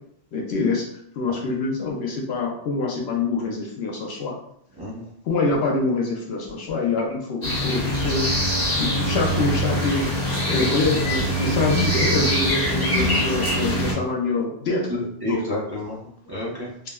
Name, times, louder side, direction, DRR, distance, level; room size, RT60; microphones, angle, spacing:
voice 1, 0.3-0.9 1.2-4.3 5.3-8.3 8.8-10.1 10.5-14.9 15.2-15.4, left 3 dB, 65° left, 0 dB, 0.8 m, -25 dB
sound 1, 7.4-13.9, equal, 40° left, 1.1 m, -23 dB
voice 2, 14.9-16.0 16.2-16.7, left 1 dB, 25° right, -8 dB, 0.6 m, -29 dB
3.4 x 2.1 x 2.2 m, 0.68 s
omnidirectional pair, 1.2 m